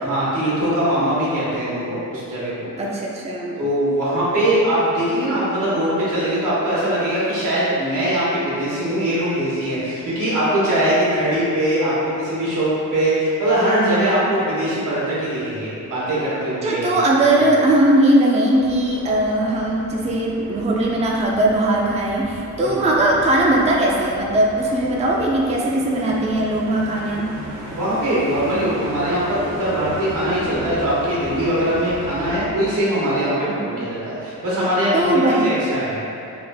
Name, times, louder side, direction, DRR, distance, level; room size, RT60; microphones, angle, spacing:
voice 1, 0.0-2.7 3.6-16.9 17.2-17.3 22.6-22.9 27.7-36.0, right 1 dB, 90° right, -9 dB, 1.4 m, -21 dB
voice 2, 2.8-3.6 13.6-14.3 16.6-27.3 33.4-33.8 34.9-35.5, right 1 dB, 20° right, -3 dB, 0.4 m, -19 dB
sound 1, 18.6-32.5, right 1 dB, 70° right, 0.7 m, -36 dB
3.5 x 2.4 x 3.4 m, 2.6 s
cardioid pair, 95°, 31 cm